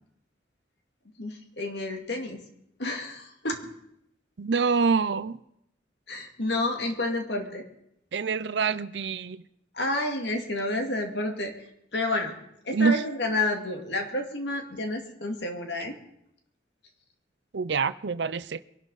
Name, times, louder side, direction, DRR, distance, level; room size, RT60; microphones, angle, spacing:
voice 1, 1.2-2.4 2.8-3.6 6.1-7.6 9.7-16.0, left 2 dB, 70° left, 2.2 m, -30 dB
voice 2, 4.4-5.4 8.1-9.4 12.7-13.0 17.5-18.6, right 5 dB, 70° right, 0.5 m, -26 dB
22.5 x 12.0 x 4.0 m
head